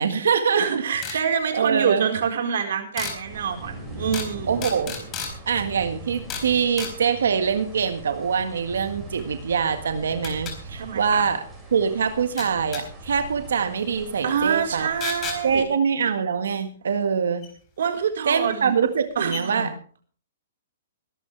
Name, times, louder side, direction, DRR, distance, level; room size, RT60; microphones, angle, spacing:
voice 1, 0.0-0.6 1.1-1.2 1.5-2.1 4.5-5.0 5.5-11.4 11.7-14.9 15.4-17.5 18.3-19.7, right 6 dB, 85° right, 8 dB, 1.7 m, -24 dB
voice 2, 0.5-4.7 10.8-11.3 14.2-15.7 17.8-18.7 19.2-19.6, right 7 dB, 70° right, 5 dB, 4.4 m, -26 dB
sound 1, 1.0-1.2 3.0-3.2 4.1-4.3 4.6-5.3 6.3-6.5 6.8-6.9 9.2-9.3 10.2-10.5 12.4-12.8 15.0-15.4 17.4-17.5 18.5-18.6 19.0-19.1 19.3-19.4, left 6 dB, 20° left, 4.2 m, -32 dB
sound 2, 3.2-15.6, right 2 dB, 10° right, 5.9 m, -41 dB
22.0 x 12.0 x 3.4 m, 0.43 s
hypercardioid pair, 155°, 0 cm